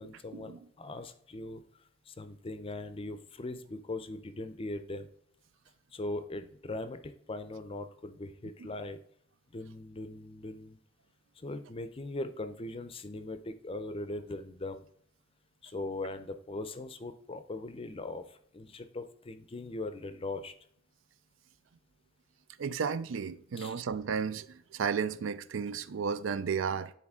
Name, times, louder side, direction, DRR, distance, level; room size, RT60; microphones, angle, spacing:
voice 1, 0.0-1.6 2.1-5.1 5.9-9.0 9.5-10.8 11.4-14.8 15.6-20.5 23.6-23.8, left 2 dB, 30° left, 0.5 m, -40 dB
voice 2, 22.6-26.9, right 6 dB, 85° right, 0.4 m, -33 dB
9.7 x 4.0 x 3.6 m
head